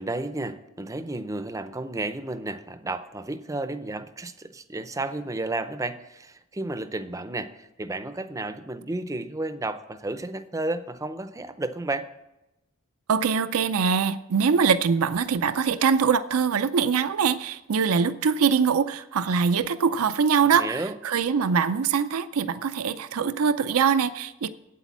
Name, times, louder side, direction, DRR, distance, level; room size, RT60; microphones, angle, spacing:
voice 1, 0.0-12.1 20.4-21.0, right 2 dB, 15° right, 11 dB, 0.5 m, -32 dB
voice 2, 13.1-24.5, right 6 dB, 80° right, 12 dB, 0.5 m, -23 dB
8.9 x 8.3 x 7.3 m, 0.93 s
head